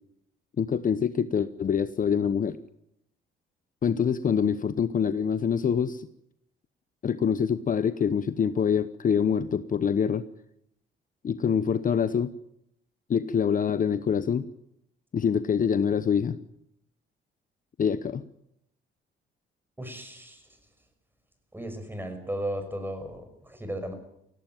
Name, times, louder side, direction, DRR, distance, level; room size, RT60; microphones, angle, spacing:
voice 1, 0.6-2.6 3.8-6.1 7.0-10.3 11.2-12.3 13.1-14.5 15.1-16.4 17.8-18.2, left 7 dB, 45° left, 13 dB, 0.9 m, -25 dB
voice 2, 19.8-20.5 21.5-23.9, right 1 dB, 10° right, 8 dB, 5.7 m, -35 dB
17.5 x 16.5 x 9.2 m, 0.75 s
cardioid pair, 90°, 20 cm